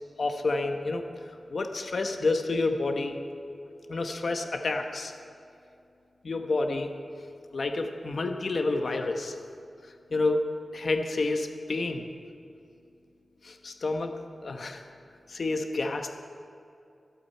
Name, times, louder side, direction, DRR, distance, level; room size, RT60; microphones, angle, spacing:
voice 1, 0.2-3.2 3.9-5.1 6.2-6.9 7.5-9.4 10.1-10.5 10.7-12.1 13.4-14.1 14.4-14.8 15.3-16.1, left 3 dB, 65° left, 5 dB, 1.0 m, -29 dB
24.0 x 8.5 x 4.5 m, 2.5 s
wide cardioid pair, 80°, 0 cm